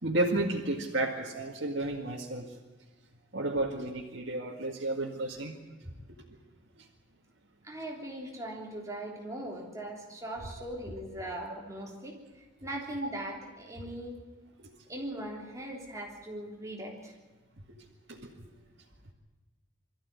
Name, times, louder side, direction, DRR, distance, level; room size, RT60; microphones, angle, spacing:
voice 1, 0.0-2.5 3.3-5.6 14.6-14.7 18.1-18.5, right 2 dB, 65° right, -3 dB, 2.1 m, -32 dB
voice 2, 7.6-14.2 14.9-17.2 18.4-18.5, right 1 dB, 15° right, -1 dB, 3.4 m, -40 dB
23.0 x 14.0 x 9.7 m, 1.2 s
head